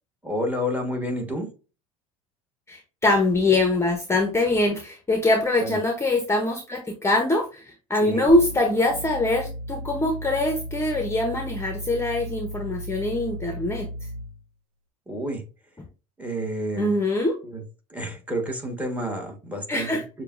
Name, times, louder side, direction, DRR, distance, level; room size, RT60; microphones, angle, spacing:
voice 1, 0.2-1.5 5.6-5.8 8.0-8.3 15.1-15.4 16.2-17.0 17.4-17.6 17.9-20.0, equal, 10° right, 3 dB, 1.4 m, -30 dB
voice 2, 2.7-13.9 16.8-17.3 19.7-20.0, left 2 dB, 15° left, 4 dB, 0.8 m, -23 dB
sound 1, 8.3-14.4, equal, 80° right, 0.7 m, -35 dB
6.6 x 2.3 x 2.5 m, 0.33 s
hypercardioid pair, 85°, 18 cm